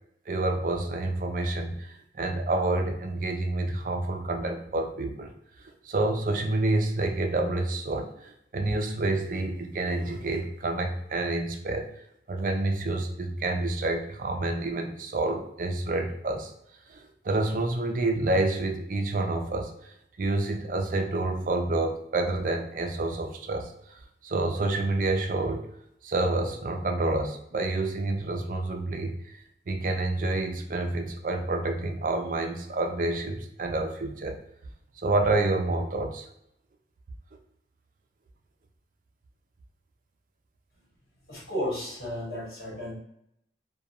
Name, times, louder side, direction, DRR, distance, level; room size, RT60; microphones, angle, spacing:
voice 1, 0.3-1.9 2.1-5.3 5.9-11.9 12.3-16.5 16.9-17.0 17.2-19.7 20.2-23.7 24.2-25.7 26.0-29.1 29.7-34.4 35.0-36.2, right 2 dB, 50° right, 4 dB, 0.4 m, -28 dB
voice 2, 41.3-42.9, equal, 60° left, -5 dB, 1.2 m, -33 dB
2.8 x 2.2 x 2.4 m, 0.75 s
head